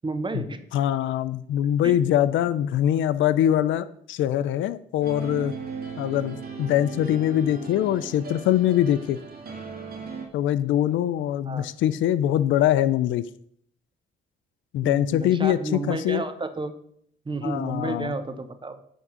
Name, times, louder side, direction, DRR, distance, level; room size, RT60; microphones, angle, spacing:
voice 1, 0.0-0.8 1.8-2.0 11.4-11.7 14.8-16.8 17.3-18.8, right 2 dB, 25° right, 10 dB, 1.0 m, -31 dB
voice 2, 0.7-5.5 6.0-9.2 10.3-13.3 14.7-16.2 17.4-18.2, left 11 dB, 75° left, 13 dB, 0.5 m, -23 dB
sound 1, 5.0-10.3, right 5 dB, 50° right, 2.0 m, -37 dB
10.5 x 3.7 x 6.0 m, 0.68 s
cardioid pair, 90°, 20 cm